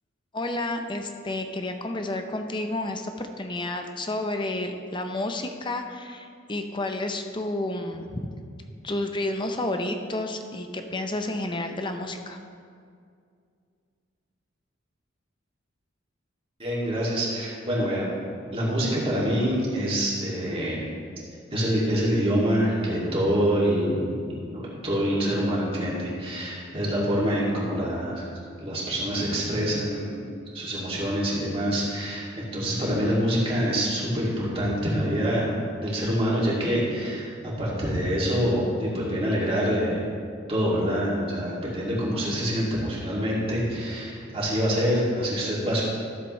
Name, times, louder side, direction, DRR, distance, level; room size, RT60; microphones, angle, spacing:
voice 1, 0.3-8.2 8.8-12.4, left 2 dB, 25° left, 5 dB, 0.6 m, -30 dB
voice 2, 16.6-18.1 18.5-20.8 21.5-28.3 28.6-30.2 30.5-35.5 35.8-40.0 40.5-45.9, equal, 30° right, -6 dB, 2.5 m, -26 dB
13.5 x 7.4 x 3.2 m, 2.3 s
head